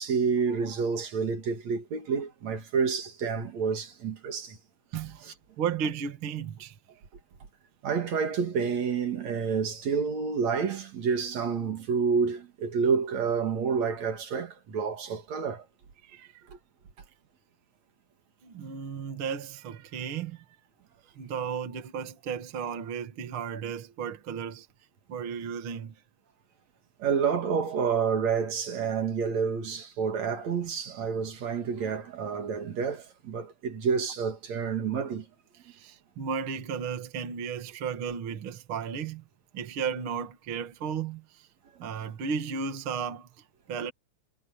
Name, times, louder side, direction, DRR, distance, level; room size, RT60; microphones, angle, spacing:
voice 1, 0.0-4.6 5.3-5.4 7.8-15.6 16.5-16.6 27.0-35.3, right 6 dB, 60° right, 3.3 m, -29 dB
voice 2, 4.9-5.2 5.6-6.8 16.0-16.4 18.4-20.4 21.0-24.7 25.1-25.9 35.6-39.2 39.5-41.5 41.8-43.9, right 6 dB, 45° right, 2.5 m, -34 dB
omnidirectional pair, 3.6 m